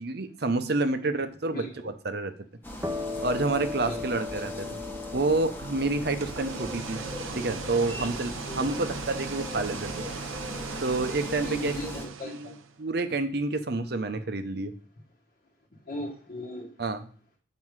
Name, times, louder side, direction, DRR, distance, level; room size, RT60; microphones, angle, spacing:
voice 1, 0.0-2.3 3.2-4.7 5.1-7.0 7.3-10.1 10.8-11.7 12.2-14.7 16.8-17.0, right 3 dB, 55° right, 9 dB, 0.7 m, -29 dB
voice 2, 1.5-1.9 3.8-4.2 8.5-8.8 11.4-12.5 15.9-16.7, left 1 dB, 45° left, -3 dB, 1.2 m, -37 dB
sound 1, 2.6-12.1, left 1 dB, 10° left, 1.0 m, -39 dB
sound 2, 2.8-10.3, left 3 dB, 10° right, 0.6 m, -39 dB
sound 3, 6.0-12.8, right 6 dB, 85° right, 0.7 m, -39 dB
7.5 x 5.1 x 4.7 m, 0.43 s
head